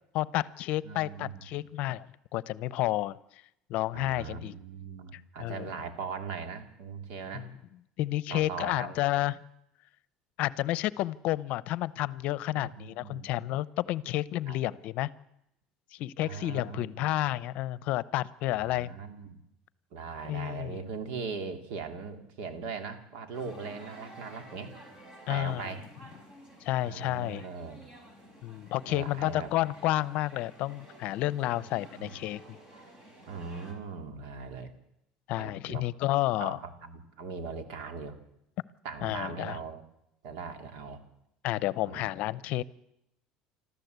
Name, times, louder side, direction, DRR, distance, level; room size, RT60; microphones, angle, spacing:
voice 1, 0.1-2.1 2.3-3.2 3.7-4.6 5.1-5.7 7.3-7.5 8.0-9.4 10.4-15.1 15.9-18.9 20.2-20.8 25.3-25.7 26.6-27.4 28.4-32.4 35.3-36.6 39.0-39.6 41.4-42.6, left 16 dB, 60° left, 19 dB, 0.7 m, -31 dB
voice 2, 0.8-1.5 3.9-7.5 8.3-9.0 12.5-13.3 14.5-14.6 16.2-17.2 18.5-19.4 19.9-24.7 25.3-25.8 26.8-27.8 28.9-29.5 31.9-32.1 33.3-34.7 35.4-35.8 36.4-38.2 38.8-39.8 40.2-41.0 41.8-42.1, right 5 dB, 75° right, 8 dB, 2.8 m, -40 dB
sound 1, 23.3-33.7, right 1 dB, 30° right, 5.5 m, -52 dB
25.5 x 14.0 x 8.1 m, 0.81 s
cardioid pair, 130°, 3 cm